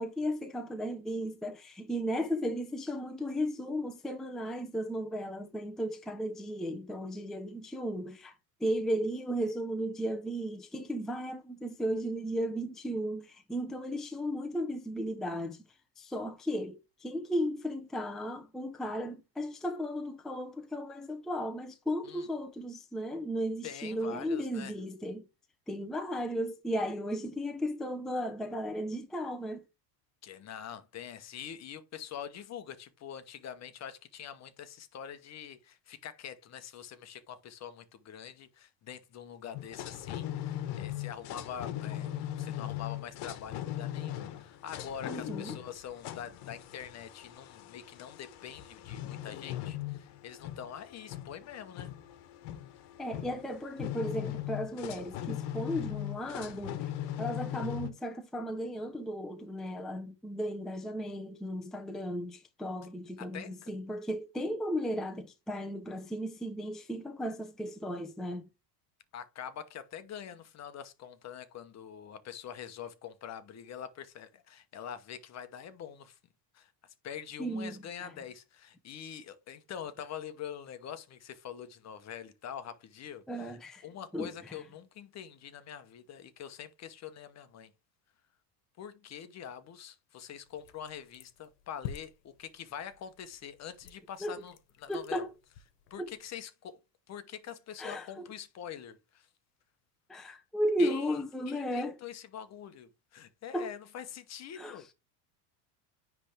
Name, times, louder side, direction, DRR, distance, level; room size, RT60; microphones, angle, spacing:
voice 1, 0.0-8.3 8.6-15.6 16.0-25.3 25.7-29.6 45.0-45.6 53.0-56.8 57.2-68.5 77.4-77.8 83.3-83.8 84.1-84.6 94.2-94.4 94.9-95.3 96.0-96.1 97.8-98.1 100.1-102.0 103.5-103.7 104.6-104.8, equal, ahead, 0.6 m, -35 dB
voice 2, 23.6-24.7 30.2-52.0 63.2-63.7 69.1-76.2 76.5-76.7 77.0-83.6 83.8-87.7 88.8-95.3 95.9-96.8 97.1-99.3 100.8-101.2 101.5-104.9, left 9 dB, 35° left, 1.0 m, -45 dB
sound 1, 39.5-57.9, left 12 dB, 55° left, 1.3 m, -39 dB
sound 2, 90.4-96.3, left 8 dB, 85° left, 1.2 m, -50 dB
9.8 x 3.5 x 3.3 m
supercardioid pair, 125°, 48 cm